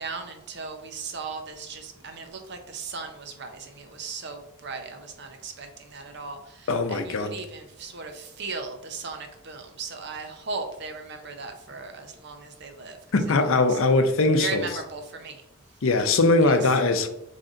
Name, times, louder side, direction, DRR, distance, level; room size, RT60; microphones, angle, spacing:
voice 1, 0.0-13.8 14.4-15.4 16.4-16.7, right 4 dB, 55° right, 0.7 m, -37 dB
voice 2, 6.7-7.3 13.1-14.7 15.8-17.1, left 3 dB, 70° left, 0.5 m, -21 dB
3.9 x 3.3 x 3.8 m
head